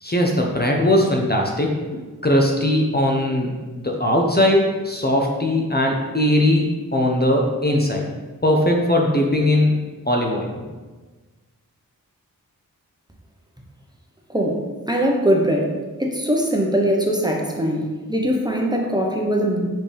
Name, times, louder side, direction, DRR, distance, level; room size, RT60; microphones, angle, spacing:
voice 1, 0.0-8.1 8.4-9.7 10.1-10.5, left 1 dB, 25° left, 0 dB, 0.8 m, -20 dB
voice 2, 14.3-19.6, equal, 10° right, -1 dB, 1.0 m, -21 dB
5.6 x 4.9 x 3.4 m, 1.3 s
cardioid pair, 40°, 36 cm